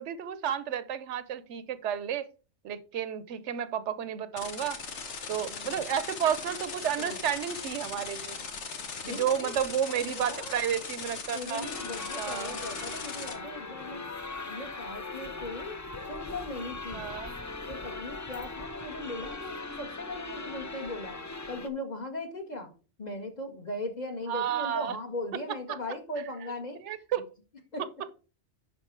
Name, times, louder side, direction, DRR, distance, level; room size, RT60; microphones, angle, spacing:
voice 1, 0.0-2.2 2.6-4.8 5.3-8.4 9.1-11.7 12.2-12.6 16.9-17.3 24.3-24.9 25.7-25.8 26.8-27.3, right 9 dB, 85° right, 15 dB, 1.0 m, -31 dB
sound 1, 4.4-13.3, left 5 dB, 80° left, 1.4 m, -39 dB
voice 2, 5.3-5.8 7.0-7.2 9.0-9.5 9.9-10.6 11.3-14.1 14.5-15.8 16.1-17.1 17.7-21.2 21.5-22.7 23.0-26.8 27.7-27.9, left 1 dB, 40° left, 4 dB, 1.5 m, -38 dB
sound 2, 11.6-21.7, left 3 dB, 20° left, 0.4 m, -40 dB
10.5 x 3.9 x 4.5 m, 0.35 s
omnidirectional pair, 1.2 m